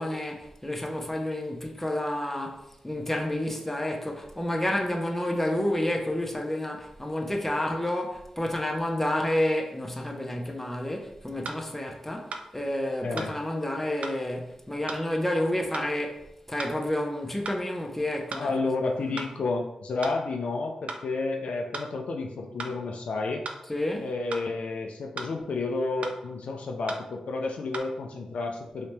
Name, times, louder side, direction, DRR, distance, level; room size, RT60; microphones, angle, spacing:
voice 1, 0.0-18.5 19.1-19.2 23.7-24.1, left 1 dB, 10° left, 0.7 m, -30 dB
sound 1, 11.4-11.6 12.3-12.5 13.2-13.3 14.0-14.2 14.9-15.0 15.7-15.9 16.6-16.8 17.4-17.6 18.3-18.5 19.2-19.3 20.0-20.2 20.9-21.0 21.7-21.9 22.6-22.8 23.4-23.6 24.3-24.5 25.2-25.3 26.0-26.2 26.9-27.0 27.7-27.8, right 3 dB, 75° right, 0.4 m, -36 dB
voice 2, 18.4-23.4 24.0-28.9, left 3 dB, 80° left, 0.4 m, -31 dB
3.2 x 2.8 x 3.2 m
cardioid pair, 50°, 2 cm